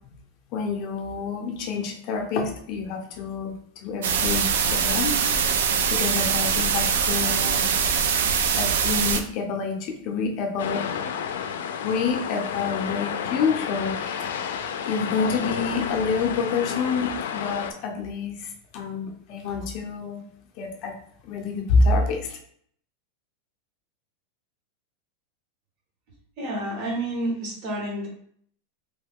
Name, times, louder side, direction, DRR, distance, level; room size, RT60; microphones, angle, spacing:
voice 1, 0.5-3.5 3.8-5.2 5.9-7.6 8.6-10.8 11.8-20.2 20.6-20.9 21.2-22.4, left 4 dB, 35° left, 2 dB, 0.6 m, -27 dB
sound 1, 4.0-9.2, right 6 dB, 85° right, 0.4 m, -23 dB
sound 2, 10.6-17.7, left 7 dB, 85° left, 0.3 m, -31 dB
voice 2, 26.4-28.1, right 1 dB, 35° right, -2 dB, 0.9 m, -29 dB
3.0 x 2.2 x 3.5 m, 0.65 s
supercardioid pair, 170°, 0 cm